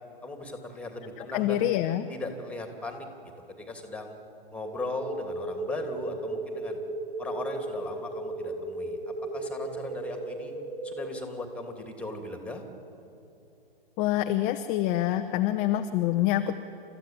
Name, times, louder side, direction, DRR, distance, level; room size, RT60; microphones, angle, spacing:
voice 1, 0.2-1.6 2.1-3.1 3.5-4.1 4.5-6.8 7.2-10.5 10.8-12.6, left 2 dB, 5° left, 4 dB, 2.7 m, -38 dB
voice 2, 1.3-2.1 14.0-16.6, left 13 dB, 25° left, 7 dB, 0.8 m, -26 dB
sound 1, 4.6-11.1, right 2 dB, 85° right, 5.2 m, -35 dB
29.0 x 14.0 x 9.0 m, 2.7 s
hypercardioid pair, 120°, 30 cm